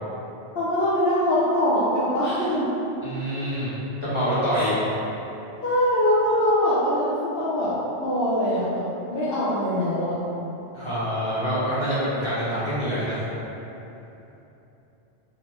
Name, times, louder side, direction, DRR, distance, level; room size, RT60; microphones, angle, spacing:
voice 1, 0.6-2.7 4.5-4.8 5.6-7.8 8.0-8.8 9.1-10.2, left 1 dB, 65° left, -10 dB, 0.7 m, -23 dB
voice 2, 3.0-3.7 4.0-4.7 10.7-13.2, equal, 30° left, -11 dB, 0.7 m, -26 dB
3.4 x 2.2 x 2.9 m, 3.0 s
omnidirectional pair, 1.2 m